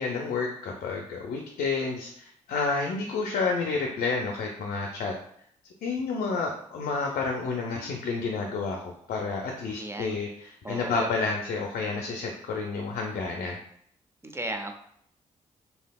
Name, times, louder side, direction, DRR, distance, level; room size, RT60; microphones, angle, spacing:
voice 1, 0.0-5.1 5.8-13.6, left 4 dB, 65° left, 1 dB, 0.5 m, -30 dB
voice 2, 9.8-10.2 10.6-11.1 14.2-14.8, right 1 dB, 15° right, 5 dB, 0.5 m, -35 dB
3.3 x 2.8 x 2.3 m, 0.68 s
hypercardioid pair, 40°, 16 cm